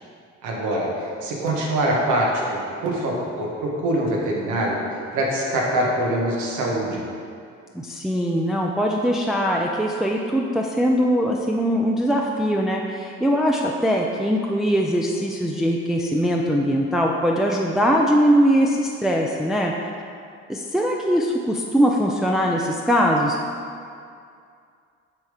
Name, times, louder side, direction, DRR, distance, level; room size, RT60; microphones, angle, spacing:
voice 1, 0.4-4.8 5.1-7.0, right 1 dB, 75° right, -2 dB, 1.4 m, -24 dB
voice 2, 7.7-19.9 20.5-23.4, equal, ahead, -1 dB, 0.5 m, -21 dB
7.5 x 3.6 x 5.0 m, 2.3 s
supercardioid pair, 65°, 30 cm